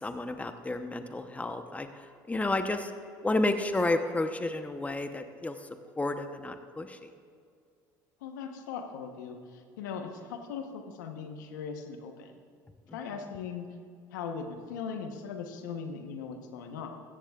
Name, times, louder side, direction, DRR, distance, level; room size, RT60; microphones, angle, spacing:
voice 1, 0.0-2.9 3.2-5.6 6.0-7.1, left 2 dB, 15° left, 8 dB, 0.9 m, -31 dB
voice 2, 8.2-12.4 12.9-13.7 14.1-16.9, left 6 dB, 85° left, 5 dB, 1.1 m, -39 dB
16.0 x 14.0 x 2.4 m, 2.2 s
hypercardioid pair, 75°, 10 cm